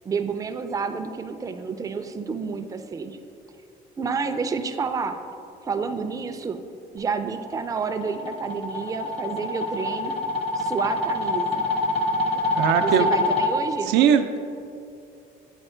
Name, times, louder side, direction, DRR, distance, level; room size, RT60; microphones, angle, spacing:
voice 1, 0.0-3.2 4.0-5.2 5.6-6.6 6.9-10.2 10.5-11.7 12.8-13.9, right 5 dB, 20° right, 7 dB, 0.4 m, -29 dB
sound 1, 7.3-13.5, left 2 dB, 35° left, 0.7 m, -26 dB
voice 2, 12.3-13.1 13.9-14.4, right 9 dB, 85° right, 8 dB, 0.4 m, -20 dB
8.0 x 4.2 x 4.3 m, 2.6 s
cardioid pair, 110°, 17 cm